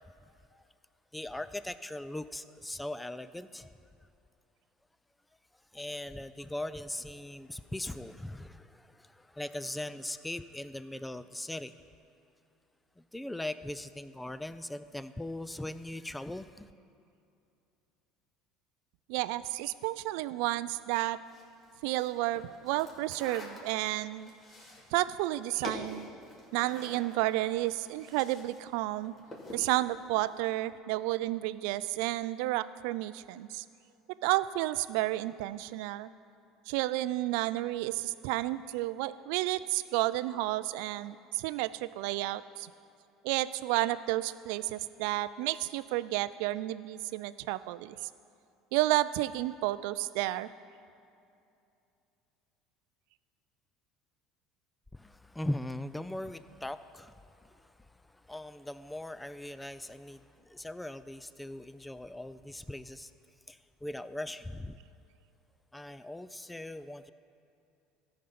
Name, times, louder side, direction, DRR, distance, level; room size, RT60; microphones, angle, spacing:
voice 1, 1.1-3.7 5.7-11.7 13.1-16.7 54.9-57.7 58.1-63.1 63.5-64.8 65.7-67.1, left 1 dB, 10° left, 14 dB, 0.4 m, -40 dB
voice 2, 19.1-21.2 21.8-24.3 24.9-26.1 26.5-29.1 29.5-33.6 34.2-36.1 36.7-42.7 43.2-48.0 48.7-50.5, right 17 dB, 75° right, 16 dB, 0.3 m, -31 dB
sound 1, 21.2-28.6 28.9-29.7, left 1 dB, 35° left, 2.4 m, -47 dB
13.5 x 5.3 x 5.9 m, 2.6 s
hypercardioid pair, 85°, 0 cm